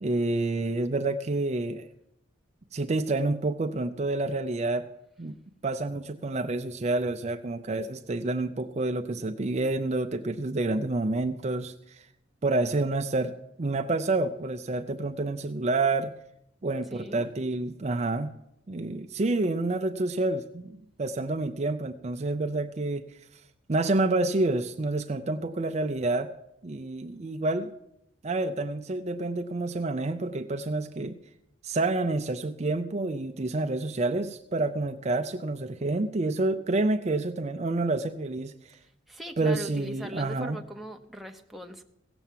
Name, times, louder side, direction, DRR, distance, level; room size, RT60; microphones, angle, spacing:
voice 1, 0.0-1.9 2.7-4.9 5.2-5.3 5.6-12.0 12.4-13.3 13.6-16.1 16.6-18.3 18.7-23.0 23.7-26.3 26.6-27.7 28.2-31.2 31.6-38.8 39.4-40.6, right 2 dB, 35° right, 7 dB, 0.5 m, -28 dB
voice 2, 16.9-17.3 39.1-41.8, equal, ahead, 2 dB, 0.8 m, -40 dB
17.0 x 7.0 x 7.4 m, 0.80 s
head